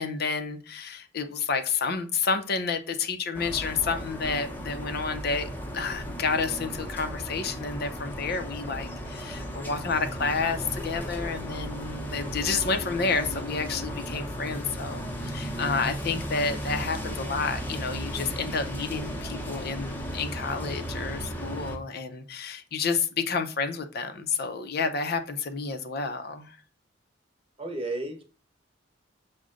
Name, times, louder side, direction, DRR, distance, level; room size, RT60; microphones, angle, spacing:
voice 1, 0.0-26.6, left 4 dB, 55° left, 0.6 m, -30 dB
sound 1, 3.3-21.8, equal, 10° left, 0.8 m, -35 dB
voice 2, 27.6-28.2, right 2 dB, 30° right, 0.9 m, -32 dB
6.2 x 2.2 x 3.7 m
head